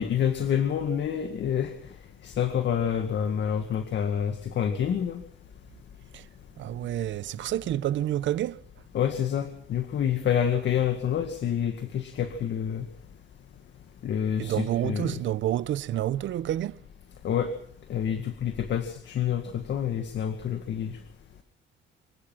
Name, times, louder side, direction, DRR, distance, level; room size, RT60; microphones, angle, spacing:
voice 1, 0.0-1.7 2.2-5.2 8.9-12.9 14.0-15.1 17.2-17.5 17.9-20.9, left 9 dB, 65° left, 2.0 m, -27 dB
voice 2, 6.6-8.6 14.4-16.8, right 12 dB, 70° right, 0.7 m, -29 dB
25.5 x 16.5 x 6.2 m
cardioid pair, 90°, 20 cm